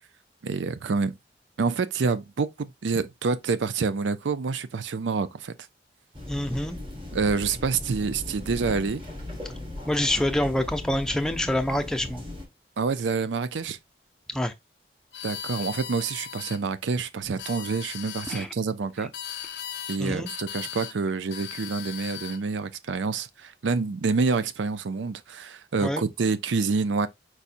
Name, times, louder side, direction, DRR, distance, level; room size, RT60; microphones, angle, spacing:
voice 1, 0.4-1.1 1.6-5.5 7.1-9.0 12.8-13.8 15.2-19.1 19.9-27.1, right 4 dB, 90° right, 0.5 m, -27 dB
sound 1, 6.1-12.5, left 1 dB, 30° right, 1.9 m, -38 dB
voice 2, 6.3-6.8 9.9-12.2 14.3-14.5 18.3-18.5 20.0-20.3 25.8-26.1, left 1 dB, 5° left, 0.5 m, -26 dB
sound 2, 15.1-16.6 17.2-18.5 19.1-20.0 20.3-21.0 21.3-22.4, left 10 dB, 75° left, 0.6 m, -38 dB
4.7 x 4.1 x 2.5 m
head